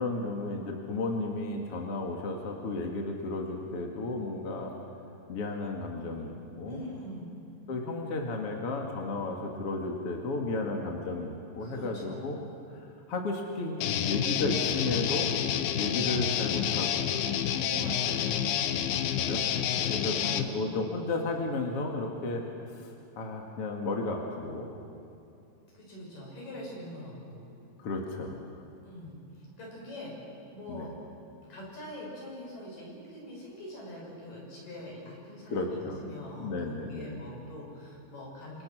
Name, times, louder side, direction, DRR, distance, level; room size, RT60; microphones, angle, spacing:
voice 1, 0.0-4.7 5.3-6.8 7.7-12.4 13.1-13.8 14.1-15.3 15.8-17.0 19.2-19.4 19.9-24.7 27.8-28.4 30.7-30.9 35.5-36.1 36.4-37.2, left 3 dB, 45° left, 1 dB, 2.6 m, -33 dB
voice 2, 6.7-7.3 11.6-12.3 17.6-18.9 19.7-20.8 25.7-27.4 28.8-30.1 30.5-30.9 31.5-38.6, left 1 dB, 70° left, -3 dB, 8.6 m, -43 dB
Guitar, 13.8-20.5, left 9 dB, 85° left, 2.8 m, -29 dB
29.5 x 26.5 x 6.2 m, 2.7 s
omnidirectional pair, 4.0 m